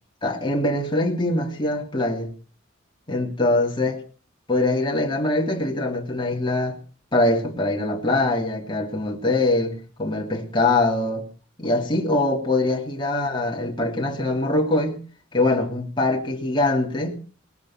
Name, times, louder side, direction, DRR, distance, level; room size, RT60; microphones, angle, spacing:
voice 1, 0.2-2.3 3.1-4.0 4.5-6.8 7.1-11.2 11.6-15.0 15.3-17.2, left 2 dB, 25° left, 3.1 m, -23 dB
20.0 x 11.5 x 5.9 m
head